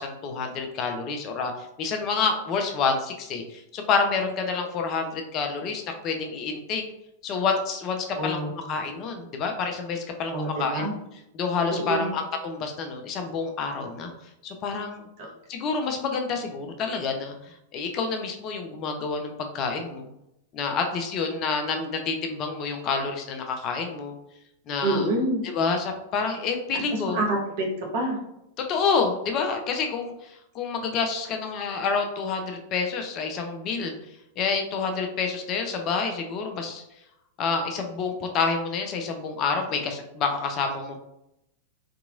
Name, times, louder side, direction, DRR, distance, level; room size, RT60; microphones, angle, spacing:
voice 1, 0.0-6.8 7.2-10.8 11.3-14.1 14.4-15.1 15.5-20.1 20.5-24.1 24.7-25.1 25.4-27.2 28.7-33.9 34.4-36.8 37.4-41.0, left 5 dB, 35° left, 4 dB, 0.5 m, -28 dB
voice 2, 8.2-8.5 10.3-10.9 11.7-12.1 15.2-15.3 24.8-25.4 26.9-28.2, right 1 dB, 50° right, -1 dB, 1.1 m, -27 dB
3.6 x 2.9 x 2.5 m, 0.82 s
figure-of-eight pair, 95°, 0 cm